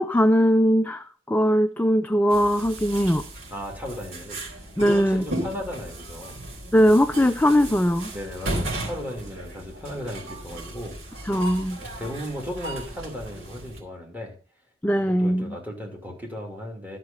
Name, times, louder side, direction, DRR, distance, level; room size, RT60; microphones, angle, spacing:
voice 1, 0.0-3.2 4.8-5.2 6.7-8.1 11.3-11.8 14.8-15.6, equal, 10° left, 8 dB, 0.4 m, -20 dB
sound 1, 2.3-13.8, right 1 dB, 75° right, 4.0 m, -36 dB
voice 2, 3.5-4.4 4.8-6.4 8.1-11.2 11.8-14.3 15.1-17.0, equal, 10° right, 0 dB, 2.7 m, -36 dB
12.0 x 5.8 x 5.4 m, 0.41 s
head